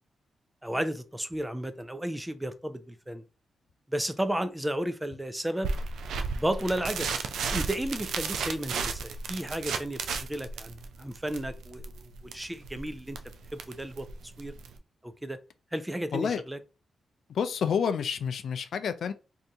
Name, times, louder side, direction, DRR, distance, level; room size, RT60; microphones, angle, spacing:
voice 1, 0.6-3.2 3.9-5.8 6.3-7.1 7.5-13.2 13.5-14.1 14.4-14.5 15.0-15.4 15.7-16.6, right 1 dB, 10° right, 0.5 m, -33 dB
sound 1, 5.6-14.8, right 5 dB, 85° right, 0.4 m, -34 dB
voice 2, 16.1-16.4 17.3-19.1, left 7 dB, 75° left, 0.3 m, -29 dB
2.8 x 2.6 x 3.4 m
cardioid pair, 60°, 0 cm